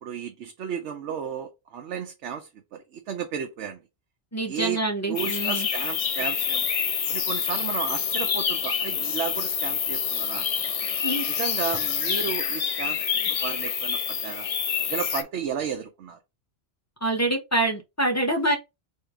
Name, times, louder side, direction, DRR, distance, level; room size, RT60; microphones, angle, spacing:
voice 1, 0.0-3.8 4.4-4.8 5.1-6.6 7.1-10.5 11.4-13.0 13.2-14.5 14.9-16.2, right 8 dB, 80° right, 0.9 m, -33 dB
voice 2, 4.3-5.7 11.0-11.3 17.0-18.6, right 1 dB, 15° left, 0.7 m, -25 dB
sound 1, 5.1-15.2, left 7 dB, 65° left, 0.3 m, -27 dB
3.6 x 2.7 x 4.7 m
omnidirectional pair, 1.2 m